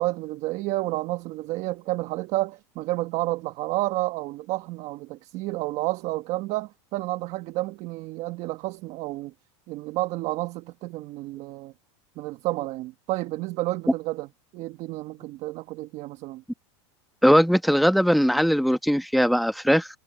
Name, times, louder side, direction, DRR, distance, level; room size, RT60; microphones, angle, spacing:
voice 1, 0.0-9.3 9.7-11.7 12.2-14.3 14.5-16.4, right 18 dB, 45° right, 1.4 m, -30 dB
voice 2, 17.2-19.9, equal, ahead, 1.1 m, -20 dB
supercardioid pair, 135°, 15 cm